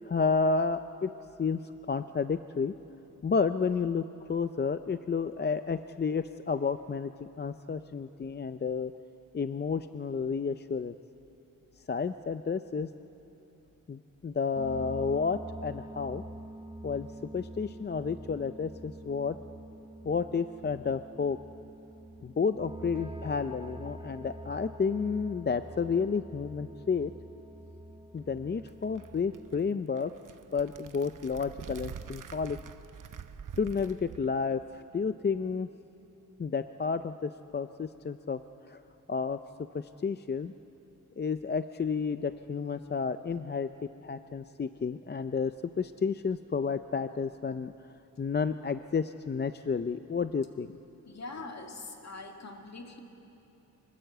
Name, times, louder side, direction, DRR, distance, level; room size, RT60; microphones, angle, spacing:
voice 1, 0.0-1.1 1.4-2.7 3.2-7.1 7.4-8.9 9.3-10.9 11.9-12.9 13.9-16.2 16.8-17.1 17.3-19.4 20.0-21.4 22.2-27.1 28.1-30.1 30.5-32.6 33.6-35.7 36.4-38.4 38.7-38.8 39.1-39.4 39.7-40.5 41.2-43.7 44.0-47.7 48.2-50.7, left 5 dB, 30° left, 10 dB, 0.4 m, -31 dB
sound 1, 14.6-29.7, right 1 dB, 15° right, 1.1 m, -46 dB
sound 2, 28.2-34.3, right 7 dB, 65° right, 0.9 m, -46 dB
voice 2, 51.1-53.0, left 3 dB, 50° left, 3 dB, 2.2 m, -43 dB
26.0 x 20.5 x 7.9 m, 2.9 s
wide cardioid pair, 150°, 34 cm